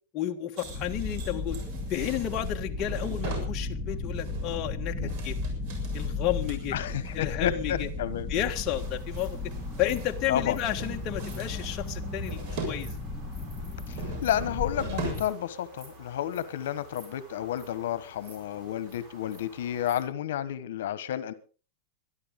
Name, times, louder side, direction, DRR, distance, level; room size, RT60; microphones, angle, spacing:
voice 1, 0.1-1.6 1.9-5.4 5.9-6.8 7.1-7.9 8.3-9.4 9.8-13.0, left 12 dB, 30° left, 1.5 m, -32 dB
sound 1, 0.6-15.3, left 3 dB, ahead, 4.0 m, -35 dB
sound 2, 0.6-7.2 7.6-7.9 8.1-10.4 10.6-12.8 13.1-15.4 15.7-15.9 16.3-16.4, right 4 dB, 50° right, 7.1 m, -42 dB
voice 2, 6.7-8.3 10.3-10.6 13.9-21.3, left 11 dB, 80° left, 1.2 m, -31 dB
sound 3, 8.7-20.0, right 2 dB, 30° right, 6.6 m, -52 dB
23.0 x 13.0 x 3.8 m
supercardioid pair, 165°, 0 cm